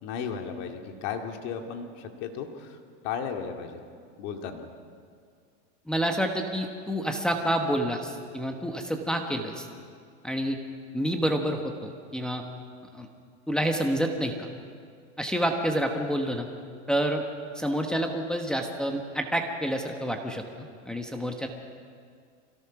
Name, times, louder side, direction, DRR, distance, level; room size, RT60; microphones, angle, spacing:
voice 1, 0.0-2.8 3.0-3.8 4.2-4.7, left 6 dB, 45° left, 4 dB, 2.2 m, -35 dB
voice 2, 5.9-9.7 10.2-10.6 10.9-12.4 12.9-13.1 13.5-14.5 15.2-16.5 16.9-17.2 17.5-20.4 20.8-21.5, equal, ahead, 2 dB, 1.1 m, -28 dB
25.5 x 18.5 x 5.9 m, 2.1 s
supercardioid pair, 155°, 36 cm